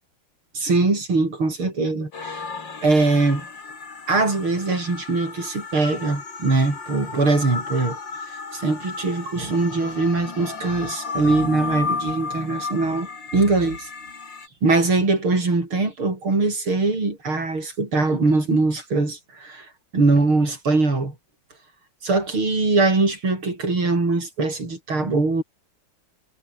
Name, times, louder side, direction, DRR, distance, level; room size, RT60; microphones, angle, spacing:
voice 1, 0.5-2.4 2.8-3.5 4.1-8.0 8.3-13.9 14.6-19.7 19.9-21.1 22.0-25.4, right 3 dB, 90° right, 6.9 m, -22 dB
sound 1, 2.1-14.5, left 4 dB, 65° left, 3.9 m, -34 dB
omnidirectional pair, 2.2 m